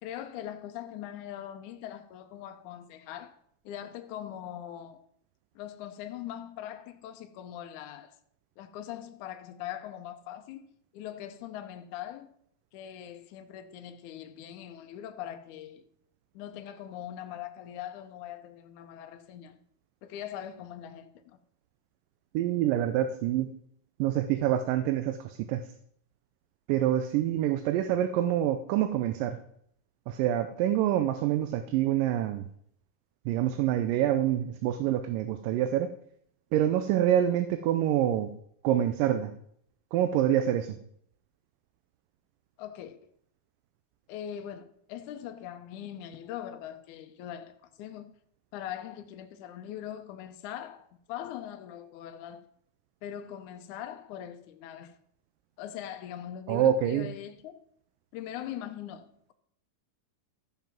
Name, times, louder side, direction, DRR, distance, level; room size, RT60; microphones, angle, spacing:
voice 1, 0.0-3.4 3.7-5.0 5.6-8.2 8.6-10.7 10.9-12.3 12.7-15.8 16.3-19.6 20.0-21.2 42.6-43.0 44.1-48.1 48.5-52.5 53.0-55.0 55.6-57.6 58.1-59.3, left 10 dB, 75° left, 2.0 m, -41 dB
voice 2, 22.3-23.5 24.0-25.6 26.7-29.4 30.1-32.5 33.3-35.9 36.5-38.3 38.6-39.3 39.9-40.8 56.5-57.1, right 11 dB, 80° right, 2.2 m, -26 dB
14.0 x 5.5 x 5.9 m
omnidirectional pair, 4.0 m